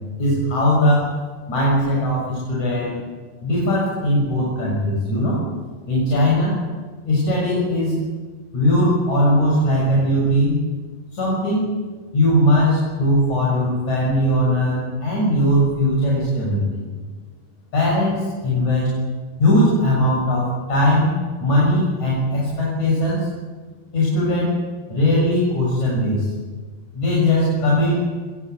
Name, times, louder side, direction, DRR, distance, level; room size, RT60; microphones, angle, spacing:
voice 1, 0.2-1.1 1.5-3.0 3.4-5.4 5.9-6.6 7.1-7.9 8.5-10.6 11.1-11.7 12.1-16.8 17.7-19.0 19.4-21.1 21.4-23.3 23.9-24.6 24.9-26.3 26.9-28.1, left 1 dB, 65° left, -4 dB, 8.2 m, -19 dB
26.5 x 21.0 x 8.3 m, 1.4 s
omnidirectional pair, 3.6 m